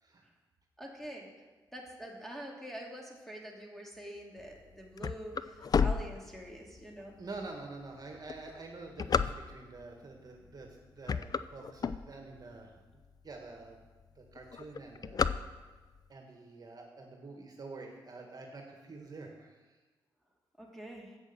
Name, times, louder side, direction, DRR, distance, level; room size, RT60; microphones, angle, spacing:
voice 1, 0.8-1.3 1.7-7.1 20.6-21.2, right 1 dB, 5° left, -1 dB, 2.4 m, -45 dB
sound 1, 4.5-6.8 7.4-7.5 8.1-9.8 10.5-10.7 11.0-12.5 13.0-13.1 13.3-13.4 13.7-14.1 14.3-16.0, left 6 dB, 45° left, 0.4 m, -31 dB
voice 2, 7.2-12.7 13.2-13.8 14.1-15.3 16.1-19.6, right 3 dB, 45° right, 2 dB, 1.6 m, -47 dB
8.0 x 6.3 x 6.7 m, 1.3 s
supercardioid pair, 50°, 9 cm